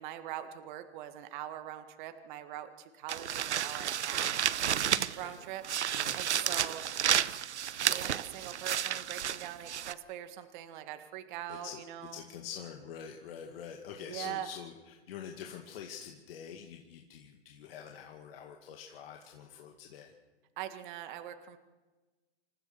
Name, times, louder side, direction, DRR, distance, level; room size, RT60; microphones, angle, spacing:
voice 1, 0.0-4.4 5.2-5.6 5.9-6.9 7.9-12.2 14.0-14.5 20.6-21.6, right 12 dB, 45° right, 8 dB, 1.8 m, -42 dB
sound 1, 3.1-5.3 5.6-9.9, right 9 dB, 80° right, 0.9 m, -31 dB
voice 2, 5.9-6.6 11.5-11.8 12.1-20.1, left 8 dB, 55° left, 2 dB, 2.2 m, -46 dB
27.5 x 15.0 x 6.8 m, 1.2 s
hypercardioid pair, 130°, 34 cm